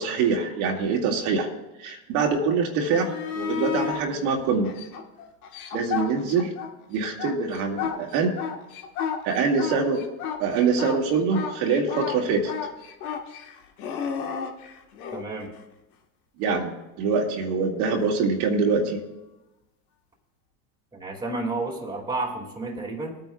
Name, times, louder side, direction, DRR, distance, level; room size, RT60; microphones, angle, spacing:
voice 1, 0.0-1.5 1.8-4.7 5.7-6.5 6.9-8.4 9.2-10.0 10.4-12.5 16.4-19.0, right 5 dB, 75° right, -1 dB, 2.1 m, -24 dB
sound 1, 2.8-4.0 4.6-6.7 7.0-15.2 18.0-18.1, left 7 dB, 90° left, 1.5 m, -32 dB
voice 2, 15.1-15.5 20.9-23.2, right 2 dB, 10° right, -1 dB, 2.2 m, -31 dB
20.5 x 9.1 x 2.3 m, 0.97 s
supercardioid pair, 115°, 42 cm